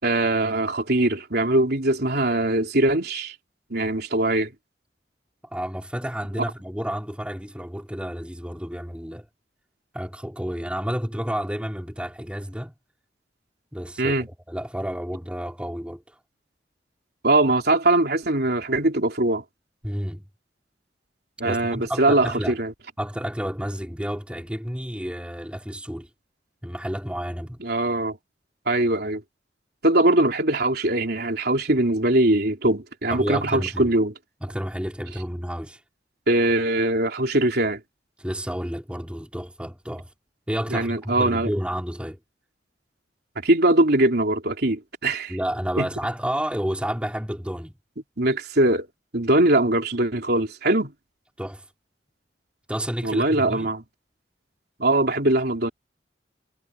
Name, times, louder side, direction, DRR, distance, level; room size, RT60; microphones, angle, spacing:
voice 1, 0.0-3.3 3.7-4.5 14.0-14.3 17.2-19.4 21.4-22.7 27.6-28.2 28.6-29.2 29.8-34.1 36.3-37.8 40.7-41.5 43.3-45.3 45.8-45.9 48.2-48.9 49.1-50.9 53.0-53.8 54.8-55.7, right 1 dB, 65° right, 3.5 m, -21 dB
voice 2, 5.4-9.3 9.9-12.7 13.7-14.2 14.5-16.2 19.8-20.3 21.4-22.6 23.0-26.1 26.6-27.6 33.1-33.9 34.4-35.8 38.2-40.1 40.5-42.2 45.3-47.7 51.4-51.7 52.7-53.7, equal, 5° right, 2.8 m, -30 dB
head